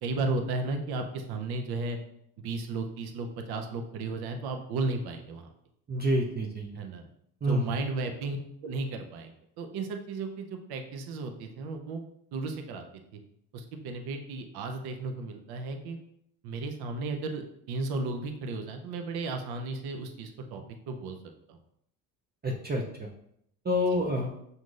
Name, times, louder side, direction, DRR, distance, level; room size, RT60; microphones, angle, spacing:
voice 1, 0.0-2.0 2.4-5.5 6.8-7.1 7.4-12.0 12.3-12.8 13.1-13.2 13.5-16.0 16.4-21.2 21.5-21.6 23.9-24.0, right 3 dB, 55° right, 5 dB, 0.7 m, -34 dB
voice 2, 5.9-6.8 7.4-7.7 22.4-23.1 23.7-24.3, equal, 20° right, -1 dB, 0.6 m, -28 dB
5.8 x 2.7 x 2.5 m, 0.74 s
hypercardioid pair, 65°, 45 cm